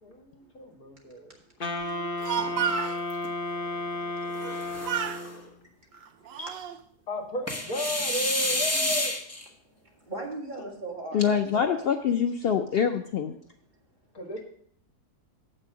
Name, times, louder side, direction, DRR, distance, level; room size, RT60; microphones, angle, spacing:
voice 1, 0.0-1.4 5.2-5.6 6.3-6.4 7.1-9.2 14.1-14.4, equal, 65° left, 0 dB, 2.5 m, -34 dB
Wind instrument woodwind instrument, 1.6-5.5, left 1 dB, 40° left, 1.0 m, -33 dB
Speech, 2.0-3.0 4.3-4.6 4.8-5.2 5.9-6.8, right 8 dB, 70° right, 0.6 m, -31 dB
sound 1, 2.4-3.3 4.3-5.4 7.5-9.4, left 1 dB, 10° left, 1.0 m, -30 dB
voice 2, 10.0-11.9, right 2 dB, 30° right, -2 dB, 2.3 m, -38 dB
voice 3, 11.1-13.3, left 7 dB, 80° left, 6 dB, 0.5 m, -25 dB
7.6 x 6.4 x 6.1 m, 0.63 s
omnidirectional pair, 1.7 m